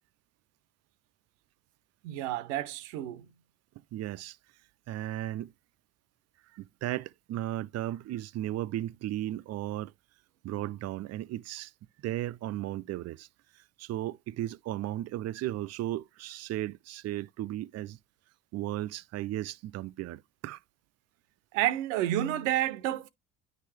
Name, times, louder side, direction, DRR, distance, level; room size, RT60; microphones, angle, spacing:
voice 1, 2.0-3.3 21.5-23.1, right 13 dB, 80° right, 0.7 m, -30 dB
voice 2, 3.9-4.4 4.9-5.5 6.5-9.9 10.4-11.7 12.0-13.3 13.6-18.0 18.5-20.6, right 14 dB, 45° right, 0.4 m, -35 dB
9.4 x 3.7 x 3.2 m
hypercardioid pair, 60°, 38 cm